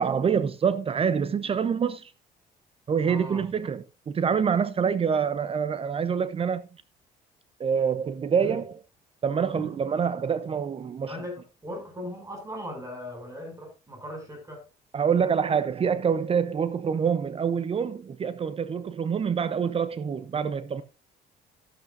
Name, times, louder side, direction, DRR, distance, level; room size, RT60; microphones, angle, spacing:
voice 1, 0.0-2.1 2.9-6.6 7.6-8.8 9.2-11.2 14.9-20.8, right 7 dB, 35° right, 0.7 m, -26 dB
voice 2, 3.0-3.5 8.3-8.6 9.5-9.7 11.0-14.6 19.2-19.4, equal, 20° right, 7.0 m, -39 dB
13.0 x 12.0 x 2.6 m
cardioid pair, 110°, 17 cm